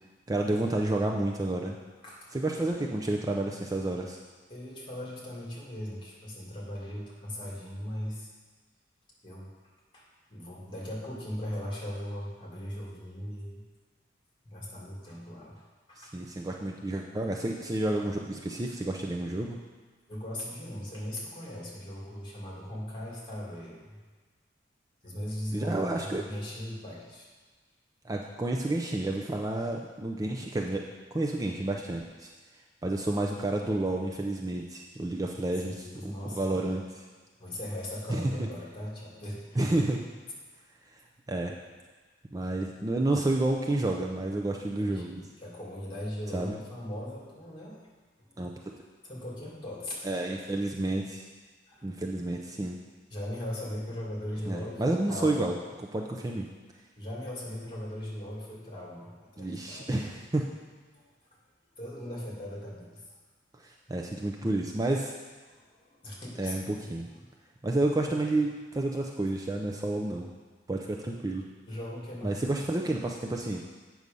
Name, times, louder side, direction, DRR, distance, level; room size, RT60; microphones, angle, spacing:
voice 1, 0.3-1.8 2.3-4.2 16.0-19.6 25.5-26.3 28.0-30.9 31.1-32.3 32.8-36.8 38.1-38.4 39.6-40.0 40.9-41.0 41.3-41.6 42.3-45.2 46.3-46.6 48.4-48.5 50.0-51.2 51.8-52.8 54.5-56.5 59.4-60.5 63.5-65.1 66.4-67.1 67.6-70.3 70.7-71.4 72.2-73.6, right 2 dB, 20° right, 0 dB, 0.5 m, -30 dB
voice 2, 2.0-2.9 4.5-8.3 9.2-9.5 9.9-10.0 10.3-13.6 14.4-15.6 15.9-16.2 20.1-24.0 25.0-25.8 26.1-27.3 35.7-36.7 37.4-39.7 44.7-47.8 48.2-48.4 49.0-50.1 51.7-51.9 53.1-55.5 57.0-60.0 60.9-61.1 61.8-63.0 65.5-66.7 71.7-72.4, left 1 dB, 30° left, -4 dB, 2.5 m, -39 dB
8.1 x 6.2 x 5.3 m, 1.4 s
head